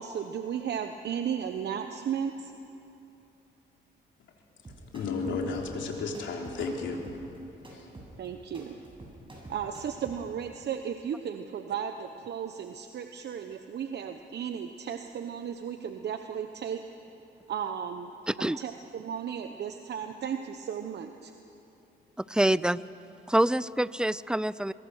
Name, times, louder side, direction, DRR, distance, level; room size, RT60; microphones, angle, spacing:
voice 1, 0.0-2.5 8.2-8.8 9.5-16.8 17.5-18.1 18.4-21.3, right 8 dB, 60° right, 7 dB, 1.0 m, -35 dB
sound 1, 4.6-10.2, right 2 dB, 25° right, 7.3 m, -48 dB
voice 2, 4.9-7.0 7.7-7.9, left 4 dB, 70° left, 0 dB, 3.6 m, -33 dB
voice 3, 18.3-18.6 22.3-22.8 23.3-24.7, right 1 dB, 5° right, 18 dB, 0.4 m, -26 dB
23.0 x 22.0 x 6.4 m, 2.8 s
cardioid pair, 90°, 20 cm